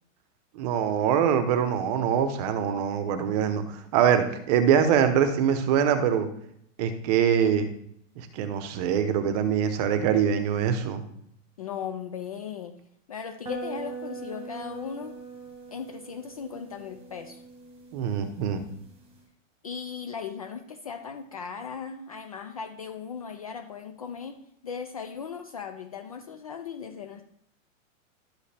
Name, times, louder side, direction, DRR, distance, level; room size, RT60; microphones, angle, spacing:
voice 1, 0.5-6.3 6.8-7.7 8.2-11.0 17.9-18.6, right 8 dB, 30° right, 9 dB, 0.9 m, -24 dB
voice 2, 11.6-12.7 13.1-15.2 15.7-17.4 19.6-24.4 24.6-27.2, left 7 dB, 30° left, 6 dB, 0.4 m, -37 dB
sound 1, 13.4-19.2, right 3 dB, 15° right, 1.4 m, -42 dB
12.0 x 5.4 x 3.4 m, 0.70 s
supercardioid pair, 160°, 40 cm